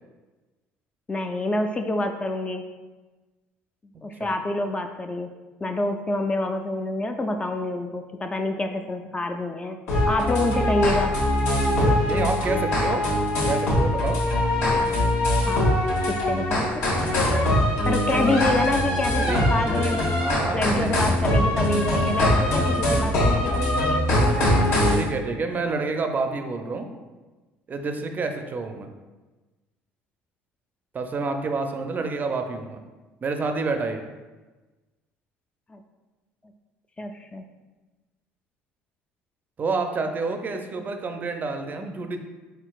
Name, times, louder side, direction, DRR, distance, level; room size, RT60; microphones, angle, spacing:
voice 1, 1.1-2.6 4.0-5.3 5.6-9.8 10.1-11.1 15.5-15.7 16.1-16.8 17.8-20.1 20.5-24.5 35.7-35.8 37.0-37.4, left 2 dB, 20° left, 6 dB, 0.3 m, -27 dB
sound 1, 9.9-25.0, left 1 dB, 65° left, 1.2 m, -22 dB
voice 2, 11.6-13.1 13.4-14.2 18.1-18.3 19.2-20.9 21.4-21.6 24.6-26.9 27.7-28.9 30.9-32.8 33.2-34.0 39.6-42.2, right 3 dB, 35° right, 5 dB, 0.5 m, -29 dB
4.4 x 3.9 x 2.3 m, 1.2 s
supercardioid pair, 85°, 5 cm